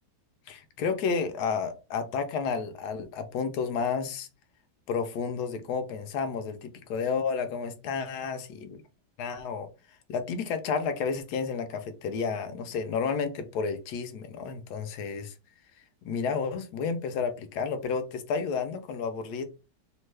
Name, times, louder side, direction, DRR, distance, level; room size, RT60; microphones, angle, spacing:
voice 1, 0.5-4.3 4.9-8.8 9.2-9.7 10.1-15.3 16.0-19.4, left 5 dB, 70° left, 1.0 m, -31 dB
3.1 x 2.1 x 3.2 m
omnidirectional pair, 1.9 m